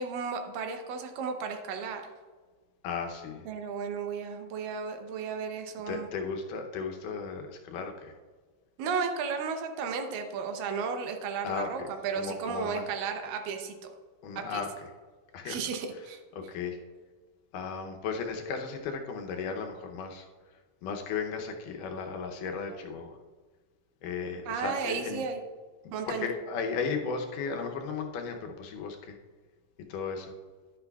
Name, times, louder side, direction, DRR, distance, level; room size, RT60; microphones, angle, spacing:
voice 1, 0.0-2.0 3.5-6.1 8.8-13.9 14.4-14.6 15.4-16.2 24.5-25.4 25.9-26.3, right 5 dB, 80° right, 5 dB, 2.5 m, -34 dB
voice 2, 2.8-3.5 5.9-8.1 11.4-11.9 12.1-12.9 14.2-14.9 15.3-15.6 16.0-16.8 17.5-20.3 20.8-23.1 24.0-25.3 26.1-29.2 29.9-30.3, left 5 dB, 75° left, 4 dB, 2.3 m, -35 dB
11.0 x 9.8 x 2.3 m, 1.4 s
omnidirectional pair, 3.9 m